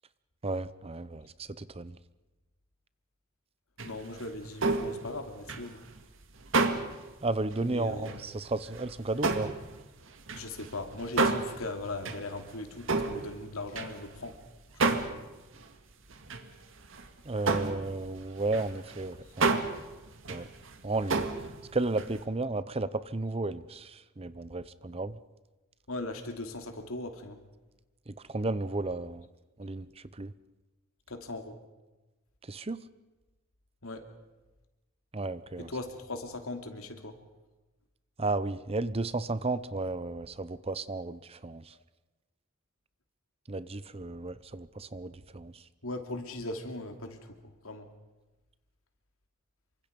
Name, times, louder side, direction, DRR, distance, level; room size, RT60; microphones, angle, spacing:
voice 1, 0.4-1.9 7.2-9.5 17.3-19.6 20.3-20.5 20.8-21.3 21.7-25.2 28.1-29.2 29.6-29.9 30.2-30.3 32.5-32.8 35.1-35.7 38.2-41.6 43.5-45.5, right 2 dB, 25° right, 15 dB, 0.7 m, -33 dB
voice 2, 3.8-5.9 7.6-8.2 10.3-14.4 14.8-15.0 25.9-27.4 31.1-31.6 33.8-34.1 35.6-37.2 45.8-47.9, left 2 dB, 75° left, 5 dB, 2.8 m, -39 dB
sound 1, 3.8-7.1 7.5-7.6 8.0-8.3 8.7-14.4 14.8-15.3 15.5-15.6 16.1-16.5 16.8-17.1 17.3-22.2, right 3 dB, 60° right, 1.9 m, -31 dB
27.5 x 24.5 x 5.3 m, 1.1 s
head